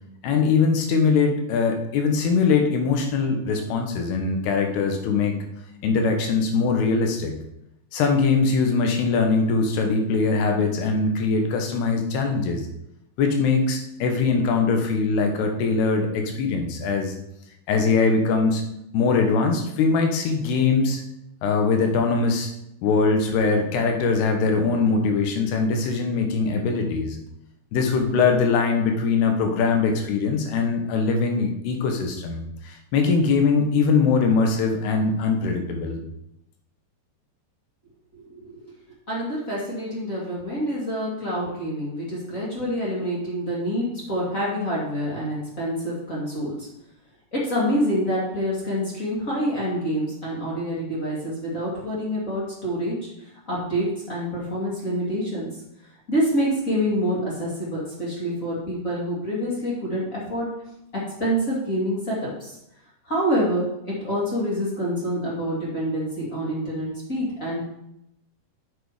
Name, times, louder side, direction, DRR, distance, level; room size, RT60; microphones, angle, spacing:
voice 1, 0.2-5.4 5.8-7.3 7.9-12.6 13.2-17.1 17.7-18.6 18.9-21.0 21.4-22.5 22.8-27.2 27.7-36.0, left 4 dB, 85° left, 3 dB, 3.3 m, -22 dB
voice 2, 38.1-38.7 39.1-46.7 47.3-52.9 53.5-55.5 56.1-60.5 61.2-62.6 63.0-67.6, equal, 25° left, -6 dB, 2.1 m, -27 dB
7.7 x 6.5 x 4.9 m, 0.82 s
omnidirectional pair, 4.6 m